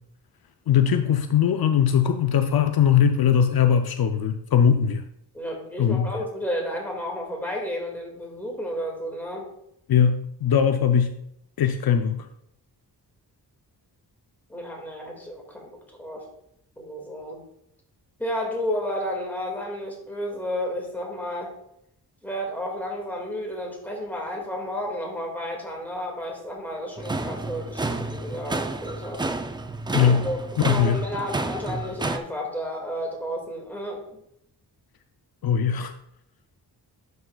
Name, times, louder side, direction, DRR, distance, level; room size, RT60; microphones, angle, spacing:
voice 1, 0.7-5.0 5.8-6.1 9.9-11.1 11.6-12.3 29.9-30.3 30.6-31.0 35.4-35.9, left 8 dB, 65° left, 7 dB, 0.5 m, -20 dB
voice 2, 5.3-9.5 14.5-15.7 16.0-16.2 16.8-17.4 18.2-21.5 22.2-29.2 30.0-34.2, equal, 5° left, -1 dB, 1.9 m, -32 dB
sound 1, 27.0-32.2, right 2 dB, 10° right, 0.3 m, -30 dB
11.0 x 6.4 x 2.3 m, 0.76 s
wide cardioid pair, 150°, 40 cm